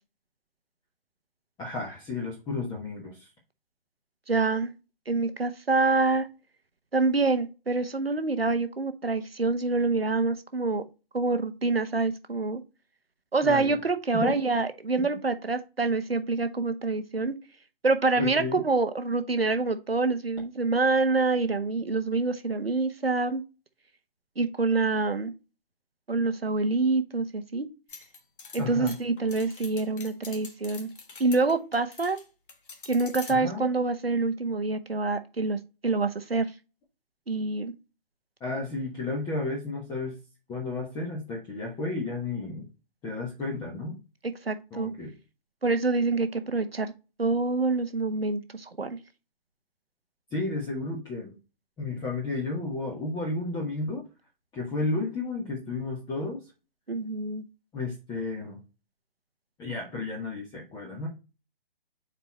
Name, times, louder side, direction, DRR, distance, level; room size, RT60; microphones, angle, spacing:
voice 1, 1.6-3.3 13.4-13.8 14.1-14.4 18.2-18.6 28.6-28.9 33.3-33.7 38.4-40.2 40.5-42.6 43.0-43.9 44.7-45.1 50.3-51.3 51.8-54.0 54.5-56.4 57.7-58.6 59.6-61.1, left 3 dB, 15° left, 1.3 m, -32 dB
voice 2, 4.3-4.7 5.1-6.3 6.9-10.8 11.1-12.6 13.3-17.3 17.8-23.4 24.4-25.3 26.1-27.7 28.5-30.9 31.2-32.2 32.9-35.6 35.8-36.5 37.3-37.7 44.4-44.9 45.6-46.9 47.2-49.0 56.9-57.4, right 3 dB, 90° right, 1.1 m, -26 dB
sound 1, 27.9-32.2 32.5-33.3, left 4 dB, 60° left, 1.4 m, -45 dB
5.4 x 4.5 x 4.0 m
figure-of-eight pair, 130°, 29 cm